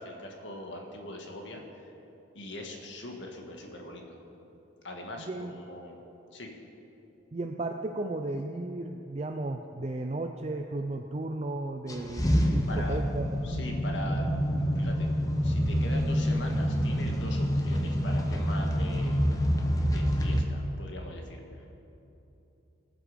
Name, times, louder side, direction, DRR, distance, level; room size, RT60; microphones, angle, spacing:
voice 1, 0.0-1.9 2.3-4.2 4.8-5.9 6.3-6.5 12.7-13.0 13.4-14.3 14.8-15.1 15.4-19.2 19.6-21.6, left 1 dB, 65° left, 2 dB, 1.7 m, -41 dB
voice 2, 7.3-13.4, right 2 dB, 35° right, 4 dB, 0.4 m, -34 dB
sound 1, 11.9-20.4, equal, 15° left, 1.0 m, -27 dB
19.0 x 7.7 x 5.1 m, 3.0 s
head